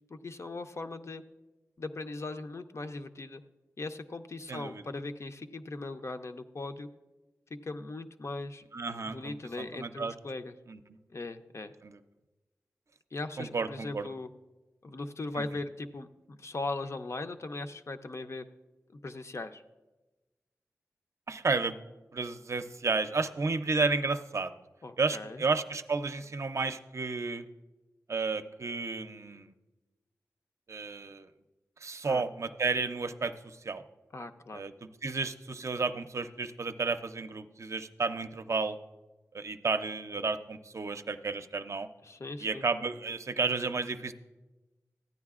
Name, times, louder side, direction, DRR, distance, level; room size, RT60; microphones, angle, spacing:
voice 1, 0.1-1.2 1.8-3.4 3.8-6.9 7.5-8.6 9.0-10.5 11.1-11.7 13.1-14.3 14.8-18.5 18.9-19.6 24.8-25.4 32.0-32.2 34.1-34.6 42.0-42.6, left 2 dB, 50° left, 8 dB, 0.5 m, -39 dB
voice 2, 4.5-4.8 8.7-10.1 10.7-10.8 11.8-12.0 13.4-14.1 15.4-15.5 21.3-21.8 22.1-24.5 25.0-27.5 28.1-29.5 30.7-31.3 31.8-33.8 34.5-38.8 39.3-41.9 42.4-44.1, right 4 dB, 55° right, 9 dB, 0.5 m, -32 dB
14.5 x 9.4 x 2.4 m, 1.1 s
wide cardioid pair, 60°, 6 cm